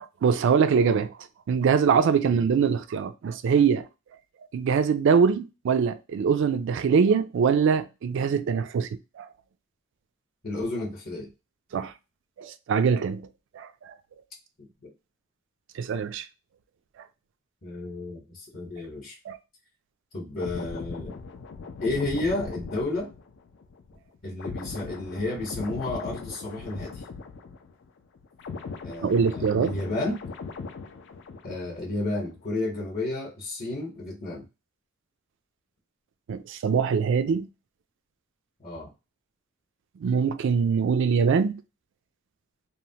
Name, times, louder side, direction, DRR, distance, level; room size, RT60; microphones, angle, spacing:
voice 1, 0.2-1.1 1.5-3.9 4.5-9.3 11.7-11.9 12.4-13.3 13.5-13.9 15.7-16.3 19.3-19.4 29.0-29.7 36.3-37.5 40.0-41.6, right 6 dB, 60° right, 0.3 m, -23 dB
voice 2, 2.3-2.7 10.4-11.3 14.6-14.9 17.6-19.2 20.1-21.1 21.8-23.1 24.2-27.0 28.8-30.2 31.4-34.5 38.6-38.9, left 2 dB, 40° left, 0.8 m, -32 dB
sound 1, 20.4-27.9 28.1-31.9 32.2-32.4, left 4 dB, 55° left, 0.4 m, -39 dB
3.0 x 2.1 x 2.7 m
head